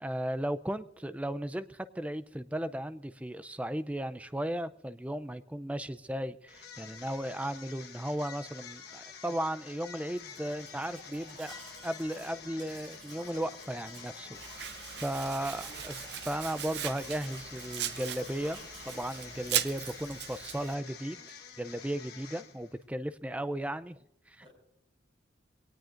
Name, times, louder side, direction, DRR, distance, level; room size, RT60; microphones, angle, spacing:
voice 1, 0.0-11.5 11.8-14.4 15.0-15.9 16.3-21.2 21.6-24.0 24.3-24.5, right 1 dB, 5° right, 13 dB, 0.5 m, -35 dB
sound 1, 6.5-22.8, left 7 dB, 55° left, 1.4 m, -49 dB
Domestic sounds home sounds, 10.1-20.2, right 2 dB, 85° right, 6.5 m, -53 dB
Domestic sounds home sounds 2, 14.3-20.7, right 11 dB, 60° right, 0.6 m, -38 dB
voice 2, 15.2-16.0 22.5-22.6 24.4-24.5, equal, 25° right, 0 dB, 7.0 m, -53 dB
23.5 x 18.0 x 2.6 m, 0.80 s
head